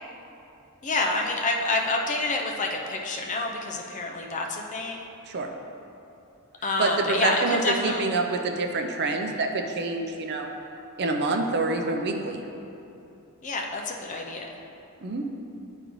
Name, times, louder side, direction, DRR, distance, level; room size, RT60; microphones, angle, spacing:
voice 1, 0.8-5.0 6.6-8.1 13.4-14.5, left 2 dB, 35° left, 1 dB, 0.5 m, -28 dB
voice 2, 6.8-10.5 11.0-12.4 15.0-15.2, right 3 dB, 50° right, 3 dB, 0.5 m, -27 dB
10.5 x 3.8 x 3.1 m, 2.8 s
head